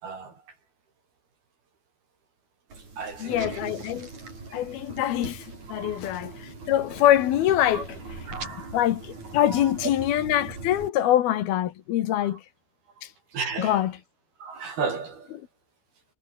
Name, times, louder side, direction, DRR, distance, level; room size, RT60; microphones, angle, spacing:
voice 1, 0.0-0.4 3.0-3.6 5.8-6.1 7.7-7.9 8.3-8.8 9.5-9.6 12.2-12.3 13.3-13.8 14.4-15.3, right 5 dB, 70° right, 7.7 m, -34 dB
sound 1, 2.7-10.9, right 3 dB, 45° right, 9.0 m, -40 dB
voice 2, 3.2-4.1 4.5-7.9 8.7-12.4 13.0-13.1 13.6-14.0, left 12 dB, 75° left, 3.2 m, -24 dB
omnidirectional pair, 4.6 m